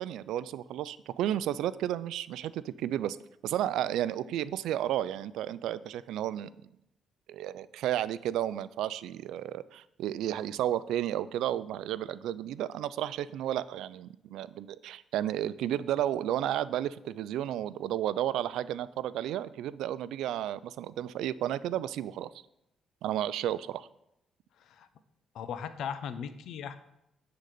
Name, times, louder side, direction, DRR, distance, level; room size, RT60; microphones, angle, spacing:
voice 1, 0.0-3.2 3.4-6.5 7.3-22.3 23.0-23.9, right 12 dB, 85° right, 16 dB, 0.3 m, -32 dB
voice 2, 24.6-24.9 25.3-26.8, left 7 dB, 75° left, 12 dB, 0.7 m, -38 dB
9.8 x 4.0 x 6.6 m, 0.82 s
cardioid pair, 90°, 0 cm